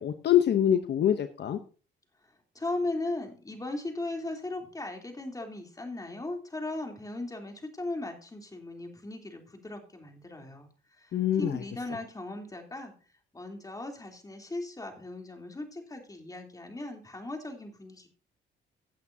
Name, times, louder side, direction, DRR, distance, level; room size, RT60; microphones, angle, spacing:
voice 1, 0.0-1.6 11.1-11.6, left 10 dB, 60° left, 9 dB, 0.9 m, -25 dB
voice 2, 2.5-10.7 11.0-12.9 13.3-18.1, left 2 dB, 15° left, 3 dB, 3.2 m, -37 dB
16.5 x 8.4 x 2.7 m, 0.37 s
cardioid pair, 90°, 20 cm